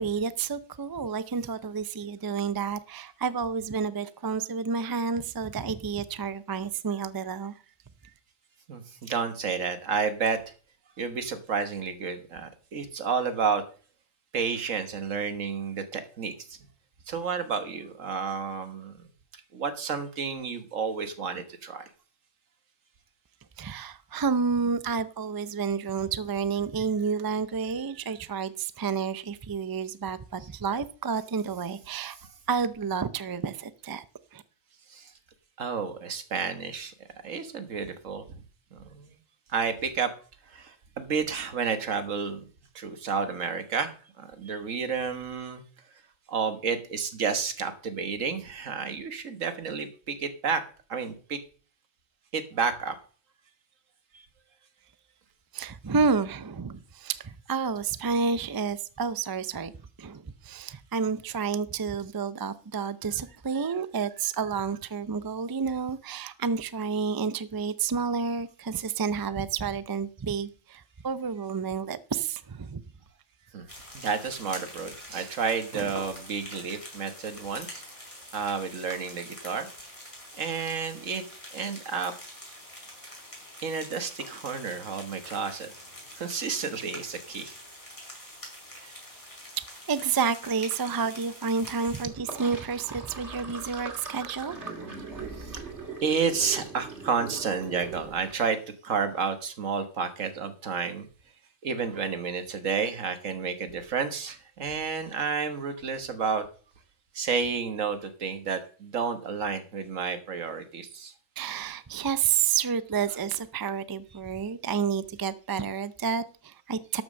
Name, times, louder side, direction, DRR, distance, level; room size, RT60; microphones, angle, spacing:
voice 1, 0.0-7.5 23.6-32.2 32.5-34.0 34.3-34.4 55.5-59.7 60.0-72.8 75.1-75.3 75.7-75.9 89.9-94.7 111.4-117.0, right 5 dB, 35° right, 0.3 m, -30 dB
voice 2, 8.7-10.4 11.0-13.6 14.3-16.6 17.1-18.9 19.5-21.8 30.4-30.5 32.2-32.3 34.9-35.1 35.6-36.9 37.2-38.4 38.7-39.2 39.5-40.1 40.5-42.4 42.7-45.6 46.3-50.6 50.9-51.4 52.3-53.0 54.1-54.2 73.5-73.7 73.9-77.8 78.3-79.7 80.3-81.2 81.5-82.1 83.6-85.7 86.2-87.6 88.8-88.9 90.4-90.5 95.4-95.6 96.0-101.1 101.6-106.5 107.1-111.1 112.9-113.2, right 5 dB, 85° right, 1.6 m, -31 dB
sound 1, 73.7-92.0, left 1 dB, 25° left, 4.6 m, -45 dB
Sink (filling or washing), 92.1-98.3, right 4 dB, 60° right, 2.7 m, -41 dB
12.5 x 6.1 x 6.4 m
omnidirectional pair, 1.3 m